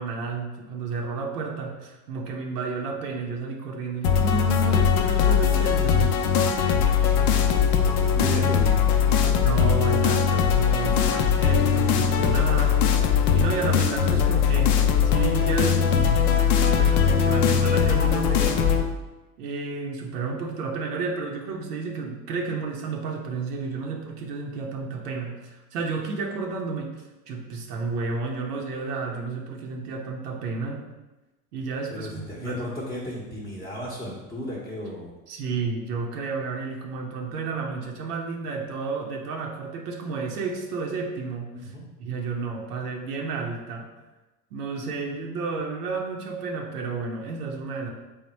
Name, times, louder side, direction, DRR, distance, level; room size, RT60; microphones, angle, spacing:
voice 1, 0.0-6.2 9.4-13.0 13.3-18.7 19.4-30.8 31.5-32.7 35.3-41.7 42.0-43.9 44.5-47.9, right 4 dB, 90° right, 1 dB, 0.6 m, -31 dB
sound 1, 4.0-18.8, left 7 dB, 80° left, 0.5 m, -20 dB
voice 2, 7.4-8.8 31.9-35.1 41.5-41.8, equal, 10° left, -5 dB, 0.7 m, -34 dB
3.4 x 2.1 x 4.0 m, 1.1 s
hypercardioid pair, 90°, 45 cm